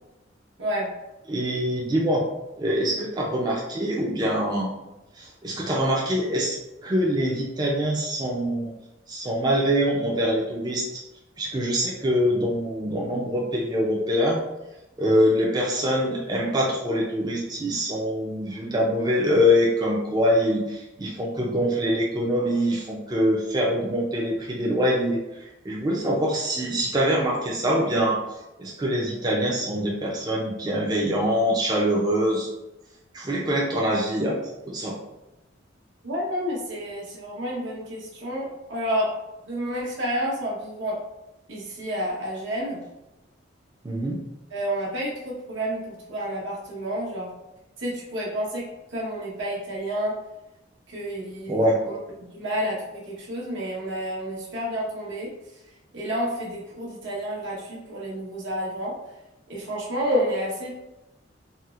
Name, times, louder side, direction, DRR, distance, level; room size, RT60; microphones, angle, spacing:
voice 1, 0.6-0.9 36.0-39.1 39.4-41.0 41.5-42.8 44.5-47.3 47.8-50.2 50.9-52.0 52.3-55.3 55.9-59.0 59.5-60.7, equal, 80° right, -5 dB, 1.0 m, -30 dB
voice 2, 1.3-2.2 2.6-4.7 5.2-6.6 6.8-8.7 9.1-10.8 11.4-14.4 15.0-25.2 25.6-28.2 28.6-32.5 33.1-34.4 34.7-34.9 43.8-44.2 51.5-51.8, equal, 20° right, -4 dB, 0.4 m, -24 dB
4.1 x 2.0 x 2.4 m, 0.96 s
head